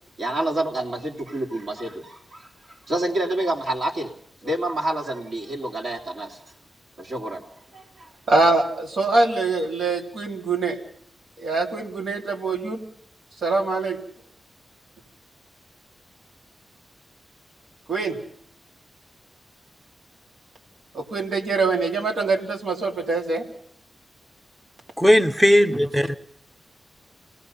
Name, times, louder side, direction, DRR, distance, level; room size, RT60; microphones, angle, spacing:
voice 1, 0.2-4.1 4.4-6.4 7.0-8.1, right 1 dB, 60° right, -2 dB, 3.2 m, -28 dB
voice 2, 8.3-10.8 11.4-12.8 13.4-14.0 17.9-18.2 20.9-23.4, right 3 dB, 75° right, 1 dB, 3.2 m, -23 dB
voice 3, 25.0-26.1, equal, 10° right, 10 dB, 1.0 m, -17 dB
28.0 x 18.0 x 5.7 m, 0.62 s
cardioid pair, 80°, 0 cm